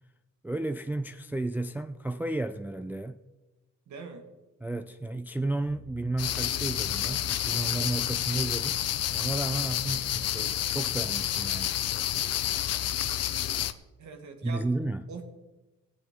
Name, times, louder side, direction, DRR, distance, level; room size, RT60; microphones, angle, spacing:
voice 1, 0.4-3.2 4.6-8.8 9.1-11.7 12.1-12.2 14.4-15.0, right 2 dB, 5° right, 0.3 m, -33 dB
voice 2, 3.9-4.3 14.0-15.2, right 4 dB, 70° right, 1.6 m, -43 dB
sound 1, 5.6-11.3, left 5 dB, 40° left, 1.6 m, -50 dB
sound 2, 6.2-13.7, left 11 dB, 55° left, 0.6 m, -29 dB
16.0 x 8.7 x 3.6 m
cardioid pair, 90°, 30 cm